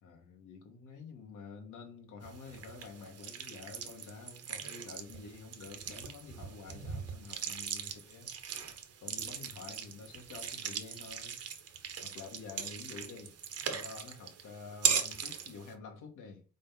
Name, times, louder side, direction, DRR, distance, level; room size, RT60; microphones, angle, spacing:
voice 1, 0.0-11.6 12.0-13.4 13.7-16.4, left 4 dB, 85° left, 2.7 m, -49 dB
sound 1, 2.2-15.7, right 7 dB, 55° right, 1.6 m, -39 dB
5.7 x 5.1 x 6.0 m
cardioid pair, 90°, 30 cm